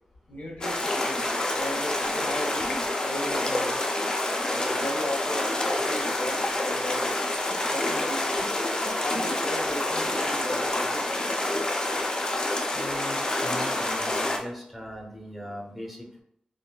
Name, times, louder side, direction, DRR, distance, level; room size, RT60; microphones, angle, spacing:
voice 1, 0.3-3.9 4.4-7.1 7.7-8.4 9.0-11.1, left 1 dB, 90° left, -3 dB, 0.8 m, -36 dB
sound 1, 0.6-14.4, left 1 dB, 30° left, 0.4 m, -27 dB
voice 2, 12.7-16.2, equal, 5° right, 0 dB, 0.7 m, -39 dB
3.7 x 2.1 x 2.2 m, 0.73 s
wide cardioid pair, 105°, 3 cm